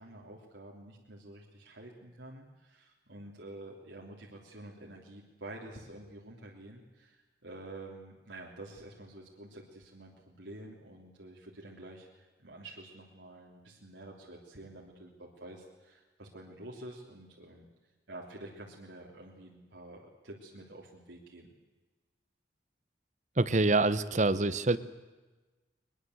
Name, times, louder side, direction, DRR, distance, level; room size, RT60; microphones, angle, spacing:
voice 1, 0.0-17.7 18.1-21.5, right 1 dB, 85° right, -2 dB, 3.2 m, -49 dB
voice 2, 23.4-24.8, right 2 dB, 40° right, 15 dB, 0.9 m, -26 dB
22.5 x 21.5 x 8.0 m, 1.2 s
head